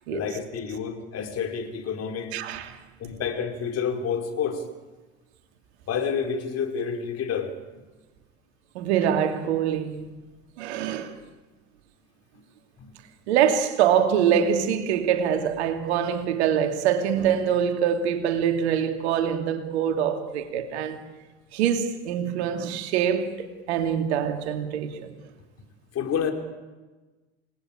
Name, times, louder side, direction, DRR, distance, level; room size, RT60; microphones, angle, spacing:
voice 1, 0.1-2.3 3.0-4.6 5.9-7.5 12.8-12.9 25.9-26.3, left 7 dB, 45° left, 4.9 m, -29 dB
voice 2, 2.3-2.8 8.7-10.0 10.6-11.1 13.3-21.0 21.5-25.1, right 8 dB, 70° right, 2.8 m, -24 dB
29.0 x 19.5 x 9.0 m
hypercardioid pair, 65°, 34 cm